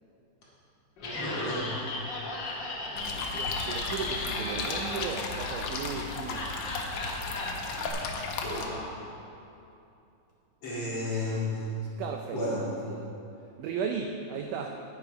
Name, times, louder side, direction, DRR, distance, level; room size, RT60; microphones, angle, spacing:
Laughter, 1.0-7.9, left 2 dB, 70° left, 1.0 m, -36 dB
voice 1, 1.0-1.7 8.4-8.9 10.6-11.5 12.3-12.6, left 2 dB, 40° left, -8 dB, 2.5 m, -32 dB
voice 2, 2.9-6.5 12.0-12.4 12.9-13.1 13.6-14.8, right 6 dB, 85° right, 3 dB, 1.8 m, -36 dB
sound 1, 3.0-8.7, left 4 dB, 90° left, 1.5 m, -35 dB
9.4 x 9.1 x 5.0 m, 2.8 s
omnidirectional pair, 4.3 m